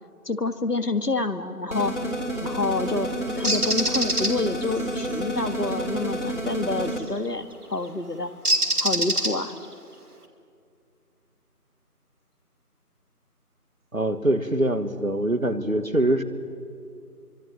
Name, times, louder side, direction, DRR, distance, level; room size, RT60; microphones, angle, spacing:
voice 1, 0.3-1.9 2.4-8.3 8.8-9.5, left 3 dB, 85° left, 10 dB, 1.9 m, -28 dB
sound 1, 1.7-7.0, right 1 dB, 50° left, 3.4 m, -30 dB
Bird, 3.4-4.3 6.9-7.2 8.4-9.6, right 1 dB, 75° right, 2.9 m, -24 dB
voice 2, 13.9-16.2, right 1 dB, 60° right, 10 dB, 1.8 m, -23 dB
26.0 x 25.0 x 7.5 m, 2.4 s
figure-of-eight pair, 180°, 46 cm